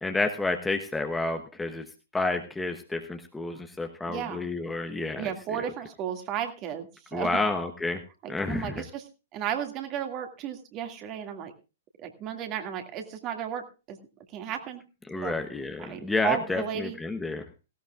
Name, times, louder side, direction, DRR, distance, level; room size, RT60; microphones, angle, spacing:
voice 1, 0.0-1.8 2.1-5.3 7.1-8.0 8.3-8.8 15.1-17.4, left 3 dB, 5° left, 4 dB, 1.1 m, -30 dB
voice 2, 4.1-4.5 5.2-7.4 8.2-9.1 9.3-11.5 12.0-14.0 14.3-14.8 15.2-15.3 15.8-17.0, right 9 dB, 30° right, 6 dB, 2.2 m, -34 dB
18.0 x 17.0 x 2.5 m, 0.31 s
figure-of-eight pair, 110°, 0 cm